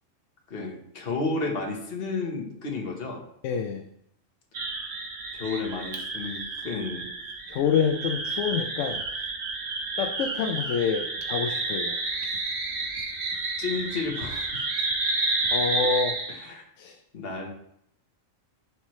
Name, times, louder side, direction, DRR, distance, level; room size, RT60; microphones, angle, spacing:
voice 1, 0.5-3.2 5.3-7.1 13.6-14.7 16.3-16.6 17.1-17.5, left 3 dB, 50° left, 1 dB, 1.4 m, -32 dB
voice 2, 3.4-3.8 7.5-9.0 10.0-12.0 15.5-16.1 16.8-17.0, left 6 dB, 75° left, 5 dB, 0.9 m, -27 dB
sound 1, 4.5-16.5, right 3 dB, 60° right, 1.2 m, -30 dB
11.0 x 4.5 x 3.1 m, 0.76 s
omnidirectional pair, 1.3 m